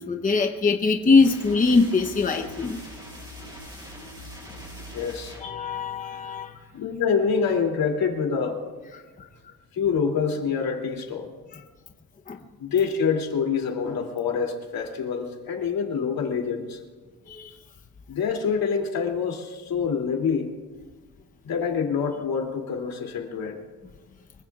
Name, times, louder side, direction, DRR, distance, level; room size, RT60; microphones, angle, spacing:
voice 1, 0.0-2.8 5.4-6.6 8.9-9.3 11.5-11.6 12.3-12.4 17.3-17.5, left 4 dB, 20° left, 4 dB, 0.8 m, -22 dB
sound 1, 1.2-6.8, equal, 10° right, 6.6 m, -42 dB
voice 2, 4.9-5.4 6.7-8.6 9.7-11.3 12.6-16.8 18.1-20.5 21.4-23.6, left 6 dB, 75° left, 1 dB, 2.9 m, -26 dB
24.5 x 23.5 x 2.4 m, 1.4 s
wide cardioid pair, 180°, 36 cm